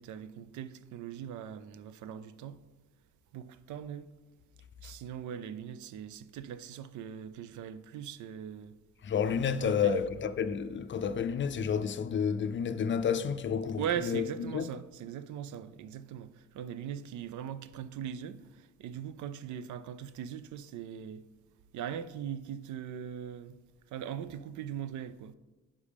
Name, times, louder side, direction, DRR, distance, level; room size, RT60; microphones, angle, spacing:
voice 1, 0.0-2.6 3.3-4.1 4.8-8.7 9.6-9.9 13.8-21.2 21.7-23.6 23.9-25.4, right 9 dB, 75° right, 0.5 m, -40 dB
voice 2, 9.0-14.7, left 7 dB, 40° left, 0.4 m, -30 dB
9.8 x 5.4 x 3.4 m
cardioid pair, 90°, 30 cm